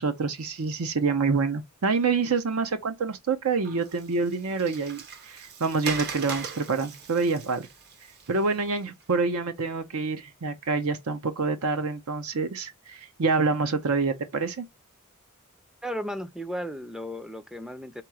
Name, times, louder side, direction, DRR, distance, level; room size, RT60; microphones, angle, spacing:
voice 1, 0.0-7.7 8.3-14.7, right 4 dB, 75° right, 0.7 m, -27 dB
Water, 3.6-9.0, right 5 dB, 50° right, 0.8 m, -40 dB
voice 2, 15.8-18.0, equal, 5° right, 0.4 m, -35 dB
3.8 x 3.0 x 4.7 m
head